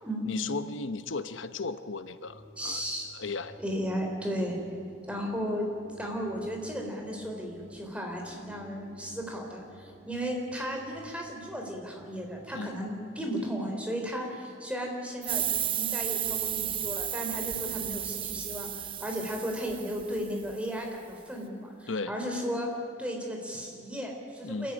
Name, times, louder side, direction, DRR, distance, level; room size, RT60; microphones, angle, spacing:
voice 1, 0.2-2.8 3.1-3.6 12.5-12.8 21.9-22.1 24.4-24.7, left 3 dB, 80° left, 11 dB, 0.9 m, -35 dB
sound 1, 2.2-12.6, equal, 60° left, 7.4 m, -54 dB
voice 2, 2.6-3.1 3.6-4.6 5.1-5.7 6.0-22.7 23.0-24.7, equal, 5° right, 1 dB, 3.9 m, -35 dB
sound 2, 15.2-20.5, right 10 dB, 25° right, 0.5 m, -33 dB
26.0 x 14.5 x 9.9 m, 2.4 s
head